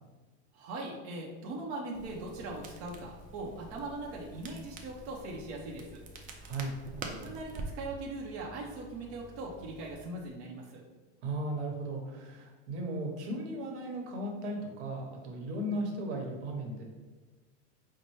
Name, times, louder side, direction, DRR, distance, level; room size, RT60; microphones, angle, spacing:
voice 1, 0.5-6.0 7.1-10.8, right 2 dB, 50° right, -2 dB, 0.7 m, -40 dB
Crackle, 1.9-9.9, right 2 dB, 25° right, 0.4 m, -46 dB
voice 2, 6.4-6.7 11.2-16.8, right 1 dB, 70° right, 1 dB, 1.1 m, -36 dB
5.4 x 2.1 x 3.1 m, 1.3 s
supercardioid pair, 135°, 35 cm